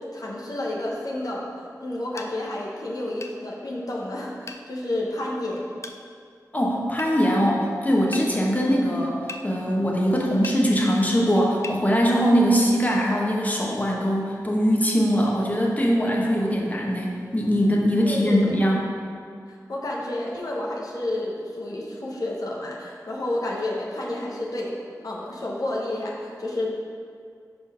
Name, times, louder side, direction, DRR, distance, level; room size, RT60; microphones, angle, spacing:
voice 1, 0.1-1.5 1.8-5.7 18.0-18.5 19.7-24.7 25.0-26.7, left 1 dB, 60° left, -4 dB, 1.0 m, -30 dB
sound 1, 2.2-2.3 3.2-3.4 4.5-4.6 5.8-6.0 7.0-7.1 8.1-8.3 9.3-9.5 10.4-10.6 11.6-11.8, left 3 dB, 45° left, 0.5 m, -37 dB
voice 2, 6.5-18.9, equal, 25° left, -2 dB, 1.0 m, -22 dB
5.2 x 4.4 x 5.5 m, 2.2 s
cardioid pair, 45°, 7 cm